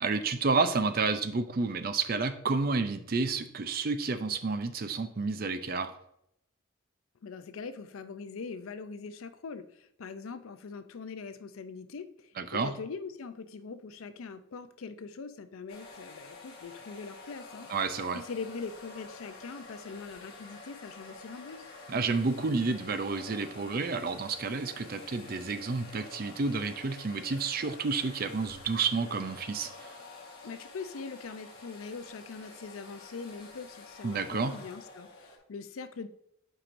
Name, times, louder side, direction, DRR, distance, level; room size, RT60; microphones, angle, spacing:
voice 1, 0.0-5.9 12.4-12.7 17.7-18.2 21.9-29.9 34.0-34.5, right 4 dB, 45° right, 10 dB, 0.5 m, -30 dB
voice 2, 7.2-17.7 18.1-21.6 30.4-36.1, left 4 dB, 80° left, 11 dB, 0.5 m, -42 dB
sound 1, 15.7-35.4, left 3 dB, 50° left, 1.6 m, -49 dB
8.8 x 4.8 x 2.6 m, 0.76 s
head